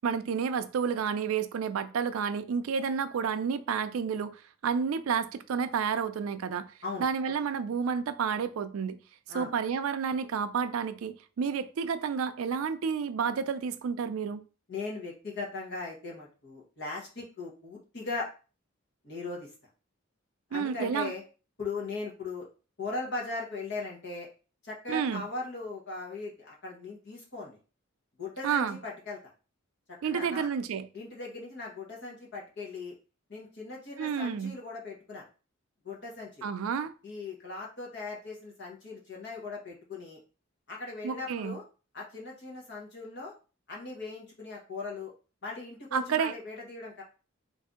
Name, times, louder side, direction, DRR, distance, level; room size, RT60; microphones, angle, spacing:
voice 1, 0.0-6.6 7.0-9.0 9.3-14.4 20.5-21.1 24.9-25.2 28.4-28.8 30.0-30.9 34.0-34.5 36.4-36.9 41.0-41.6 45.9-46.3, right 6 dB, 85° right, 0.4 m, -30 dB
voice 2, 14.7-18.3 19.0-19.5 20.5-21.2 21.6-22.5 22.8-24.3 24.6-27.6 28.2-29.2 29.9-30.5 30.9-32.9 33.3-35.3 35.8-36.5 37.0-40.2 40.7-41.6 41.9-43.3 43.7-45.1 45.4-47.0, left 3 dB, 55° left, 1.2 m, -39 dB
3.3 x 2.7 x 3.6 m
head